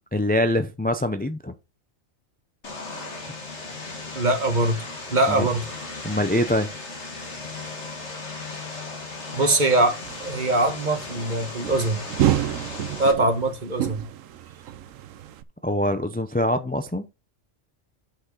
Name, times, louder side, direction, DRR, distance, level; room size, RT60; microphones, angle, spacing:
voice 1, 0.1-1.5 5.3-5.4 6.0-6.7 15.6-17.0, left 1 dB, 15° left, 0.4 m, -24 dB
Vehicle, 2.6-13.1, left 3 dB, 60° left, 2.3 m, -36 dB
voice 2, 4.1-4.8 5.1-5.7 9.3-12.0 13.0-14.0, right 2 dB, 35° right, 1.6 m, -22 dB
sound 1, 10.0-15.4, right 12 dB, 80° right, 1.0 m, -29 dB
8.8 x 5.9 x 3.9 m
omnidirectional pair, 1.3 m